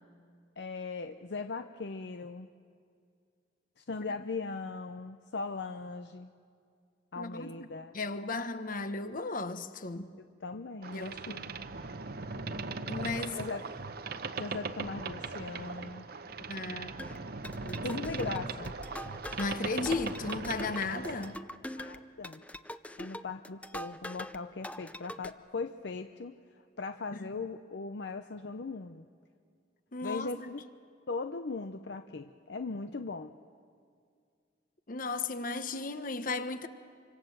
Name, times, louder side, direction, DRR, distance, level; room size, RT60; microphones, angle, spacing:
voice 1, 0.6-2.5 3.8-6.3 7.1-7.9 10.4-11.5 13.3-13.6 14.4-16.1 17.8-18.7 21.8-22.4 23.0-26.4 26.8-29.1 30.0-30.6 31.1-33.3, left 4 dB, 70° left, 0.6 m, -39 dB
voice 2, 7.2-7.5 7.9-10.1 10.9-11.5 12.9-13.4 16.5-17.0 17.7-18.0 19.4-21.4 27.1-27.3 29.9-30.5 34.9-36.7, left 3 dB, 50° left, 1.1 m, -35 dB
Boat Water vehicle, 10.8-21.3, right 4 dB, 60° right, 0.9 m, -39 dB
sound 1, 17.0-24.4 24.6-25.3, left 1 dB, 10° left, 0.6 m, -43 dB
26.5 x 25.0 x 7.8 m
head